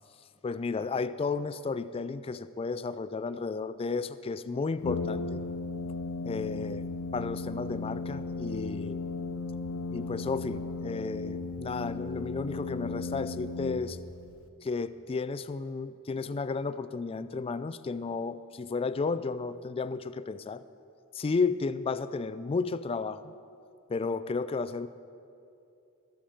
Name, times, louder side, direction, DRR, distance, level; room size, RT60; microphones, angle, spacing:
voice 1, 0.4-5.4 6.2-9.0 9.9-14.0 14.6-20.6 21.1-23.3 23.9-24.9, left 4 dB, 25° left, 14 dB, 0.3 m, -33 dB
Brass instrument, 4.8-14.3, left 3 dB, 65° left, 0.8 m, -35 dB
20.5 x 7.2 x 5.0 m, 2.6 s
head